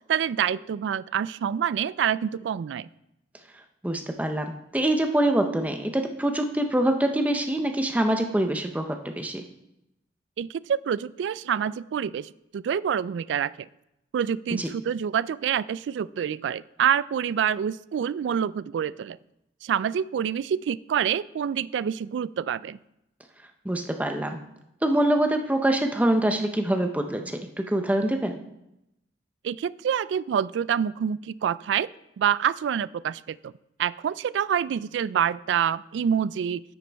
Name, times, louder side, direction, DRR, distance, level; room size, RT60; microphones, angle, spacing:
voice 1, 0.1-2.9 10.4-13.7 14.1-19.2 19.6-22.8 29.4-31.9 32.2-33.5 33.8-36.6, right 8 dB, 90° right, 19 dB, 0.3 m, -27 dB
voice 2, 3.8-9.4 14.6-14.7 23.6-24.4 24.8-28.3, right 1 dB, 10° right, 5 dB, 0.6 m, -25 dB
9.3 x 9.3 x 3.4 m, 0.85 s
head